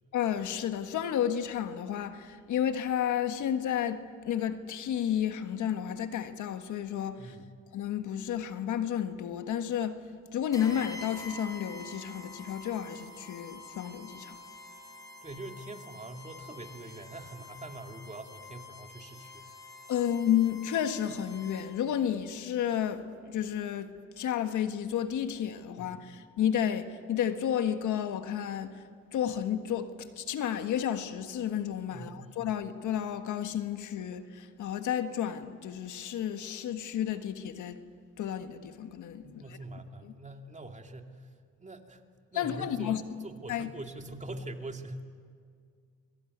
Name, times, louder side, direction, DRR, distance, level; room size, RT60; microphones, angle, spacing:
voice 1, 0.1-7.3 7.7-10.0 10.3-14.4 19.9-28.8 29.1-37.8 38.2-39.4 42.3-43.0 43.5-43.7, left 9 dB, 75° left, 1.6 m, -31 dB
sound 1, 10.5-21.9, left 2 dB, 10° left, 5.7 m, -48 dB
voice 2, 15.2-19.5 25.8-25.9 31.9-32.6 39.2-41.3 41.6-42.0 42.3-45.1, right 2 dB, 25° right, 2.5 m, -43 dB
26.5 x 22.5 x 9.5 m
cardioid pair, 90°, 30 cm